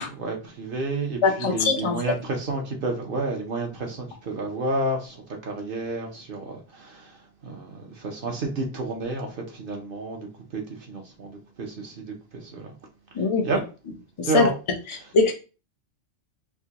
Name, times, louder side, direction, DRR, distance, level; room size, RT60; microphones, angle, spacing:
voice 1, 0.0-7.1 7.4-10.6 10.9-12.7 13.4-13.6 14.2-14.5, right 2 dB, 55° right, 0.8 m, -30 dB
voice 2, 1.2-2.0 13.1-13.4 14.2-14.5 15.1-15.4, left 4 dB, 40° left, 0.4 m, -21 dB
4.4 x 2.1 x 2.8 m
omnidirectional pair, 1.2 m